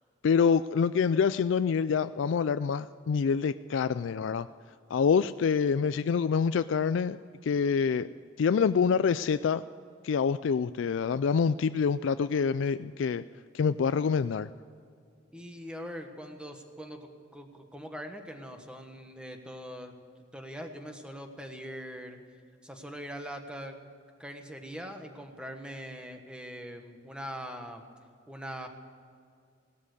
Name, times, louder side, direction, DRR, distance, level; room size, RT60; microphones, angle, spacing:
voice 1, 0.2-4.5 4.9-8.1 8.4-9.6 10.0-13.2 13.5-14.5, left 6 dB, 75° left, 13 dB, 0.4 m, -26 dB
voice 2, 15.3-20.0 20.3-22.2 22.6-23.8 24.2-27.8 28.3-28.7, equal, 5° right, 5 dB, 1.4 m, -42 dB
17.5 x 12.5 x 6.6 m, 2.3 s
head